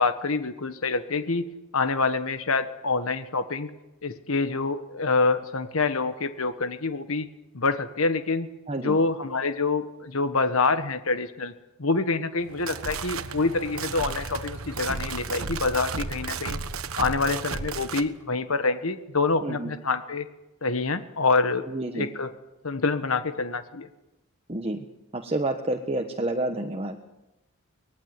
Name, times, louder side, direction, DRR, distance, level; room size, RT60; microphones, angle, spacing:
voice 1, 0.0-3.7 4.0-7.3 7.5-8.5 8.8-11.5 11.8-16.6 16.9-20.3 20.6-21.6 21.9-22.3 22.6-23.9, left 3 dB, 70° left, 10 dB, 1.4 m, -26 dB
voice 2, 8.7-9.0 19.4-19.7 21.7-22.1 24.5-24.8 25.1-27.0, right 1 dB, 25° right, 4 dB, 1.3 m, -29 dB
sound 1, 12.4-18.1, right 4 dB, 70° right, 1.3 m, -33 dB
24.5 x 19.5 x 9.6 m, 0.99 s
head